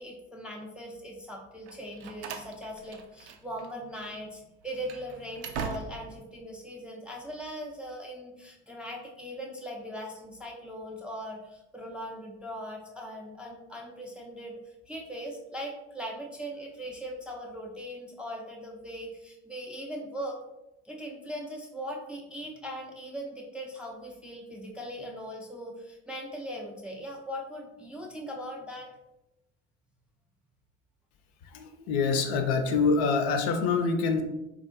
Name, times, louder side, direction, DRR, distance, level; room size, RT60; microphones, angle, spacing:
voice 1, 0.0-20.4 20.8-28.9, equal, 5° right, -1 dB, 0.4 m, -40 dB
Slam, 1.7-3.7 3.9-4.1 4.6-6.2, right 6 dB, 65° right, 0.5 m, -40 dB
voice 2, 31.5-34.2, left 4 dB, 55° left, 6 dB, 0.5 m, -25 dB
3.6 x 2.4 x 2.4 m, 0.94 s
figure-of-eight pair, 65°, 35 cm